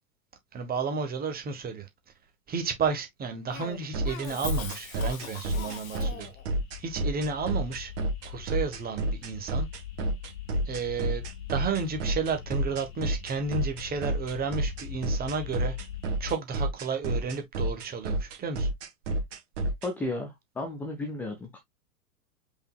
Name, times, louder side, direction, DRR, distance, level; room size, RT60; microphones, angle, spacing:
voice 1, 0.5-1.9 2.5-6.3 6.8-7.9 8.2-9.7 10.7-11.2 11.5-15.8 16.2-18.7, right 5 dB, 20° right, 1.3 m, -32 dB
Cough, 3.5-6.5, left 7 dB, 60° left, 1.4 m, -41 dB
sound 1, 3.9-19.9, right 1 dB, 50° right, 1.9 m, -29 dB
sound 2, 4.8-16.3, left 11 dB, 40° left, 1.6 m, -43 dB
voice 2, 19.8-21.6, left 2 dB, 5° left, 0.4 m, -34 dB
5.2 x 4.0 x 2.4 m
figure-of-eight pair, 95°, 46 cm